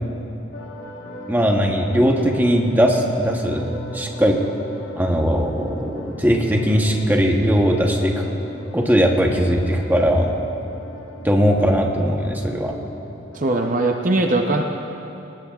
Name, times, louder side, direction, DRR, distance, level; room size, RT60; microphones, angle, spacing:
sound 1, 0.5-13.4, left 1 dB, 70° left, 1.3 m, -39 dB
voice 1, 1.3-4.4 4.9-8.2 8.7-10.3 11.2-12.8, equal, 10° right, 1 dB, 1.0 m, -19 dB
voice 2, 13.3-14.6, right 2 dB, 40° right, 3 dB, 0.7 m, -20 dB
21.0 x 18.0 x 2.4 m, 2.9 s
head